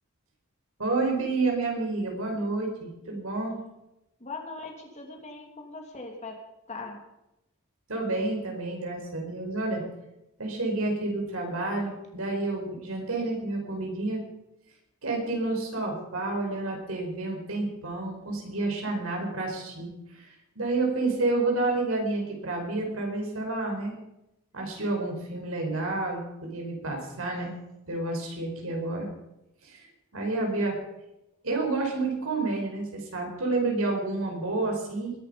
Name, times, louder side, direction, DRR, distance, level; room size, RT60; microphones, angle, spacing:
voice 1, 0.8-3.6 7.9-9.8 10.4-14.2 15.0-23.9 24.5-27.6 27.9-29.1 29.6-29.8 30.1-30.8 31.4-35.1, right 2 dB, 85° right, 1 dB, 5.0 m, -29 dB
voice 2, 4.2-6.4 6.7-7.0, left 3 dB, 35° left, 2 dB, 3.0 m, -40 dB
21.0 x 11.0 x 5.3 m, 0.90 s
head